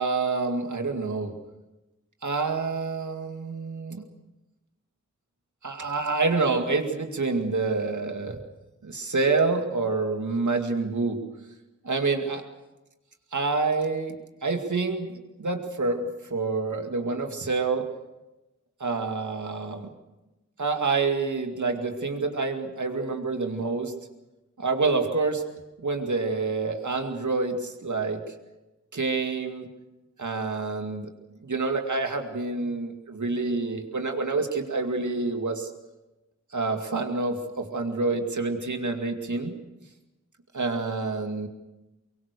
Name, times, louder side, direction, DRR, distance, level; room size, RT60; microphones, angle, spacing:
voice 1, 0.0-1.3 2.2-4.1 5.6-8.4 8.8-11.2 11.8-12.4 13.3-14.2 14.4-17.9 18.8-19.9 20.6-23.9 24.6-25.4 25.8-28.2 28.9-29.7 30.2-31.1 31.4-35.7 36.5-39.5 40.5-41.5, right 3 dB, 90° right, 4 dB, 2.3 m, -27 dB
24.0 x 23.0 x 6.8 m, 1.0 s
wide cardioid pair, 45°, 29 cm